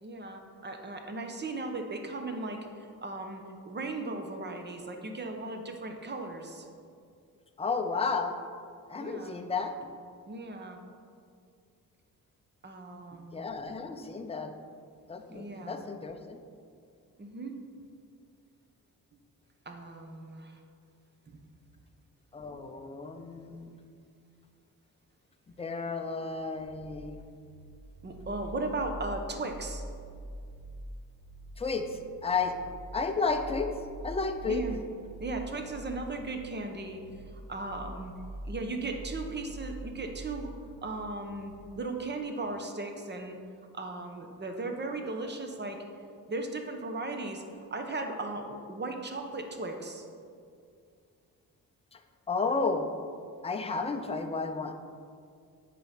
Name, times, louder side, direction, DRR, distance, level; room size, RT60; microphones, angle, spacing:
voice 1, 0.0-6.7 8.9-9.3 10.3-10.8 12.6-13.5 15.3-15.8 17.2-17.6 19.7-20.6 21.3-21.4 28.0-29.8 34.5-34.8 35.2-37.0 37.3-38.1 38.5-40.6 40.8-43.4 43.7-45.8 46.3-47.4 47.7-50.0, right 2 dB, 30° right, 4 dB, 0.9 m, -37 dB
voice 2, 7.6-8.4 8.9-9.7 13.3-14.6 15.1-16.4 22.3-23.8 25.6-27.2 31.6-32.5 32.9-33.7 34.0-34.6 51.9-52.0 52.3-52.9 53.4-54.7, left 4 dB, 15° left, 5 dB, 0.5 m, -32 dB
sound 1, 26.6-41.6, right 2 dB, 45° right, 1.6 m, -45 dB
9.3 x 4.2 x 5.8 m, 2.3 s
cardioid pair, 120°, 35 cm